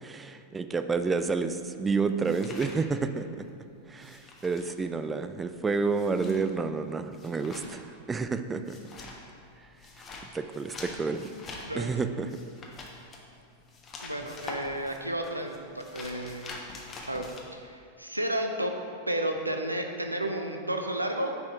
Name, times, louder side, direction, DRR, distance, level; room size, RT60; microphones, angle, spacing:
voice 1, 0.0-3.3 3.9-8.8 10.3-11.3 11.7-12.3, right 4 dB, 15° right, 10 dB, 0.4 m, -30 dB
sound 1, 1.3-3.5 3.8-17.4, left 3 dB, 25° left, 1.1 m, -45 dB
voice 2, 14.0-16.6 17.1-18.7 19.1-21.3, right 1 dB, 85° right, 4 dB, 0.6 m, -32 dB
9.6 x 4.3 x 4.6 m, 2.5 s
figure-of-eight pair, 90°, 0 cm